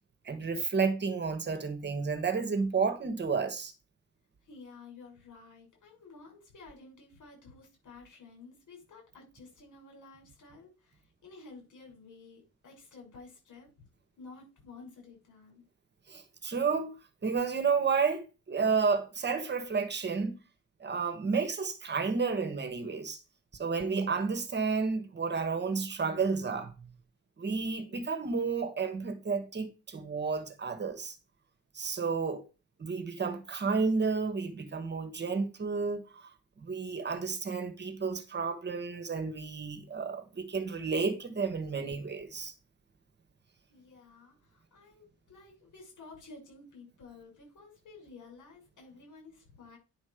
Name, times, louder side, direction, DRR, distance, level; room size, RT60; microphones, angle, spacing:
voice 1, 0.2-3.7 16.1-16.9 17.2-20.3 20.8-23.2 23.6-26.9 27.4-31.2 31.7-32.4 32.8-36.3 36.6-42.5, right 5 dB, 35° right, 1.3 m, -31 dB
voice 2, 4.5-13.9 14.2-15.6 43.7-49.8, left 3 dB, 75° left, 7.0 m, -52 dB
10.0 x 6.3 x 5.0 m
wide cardioid pair, 160°, 30 cm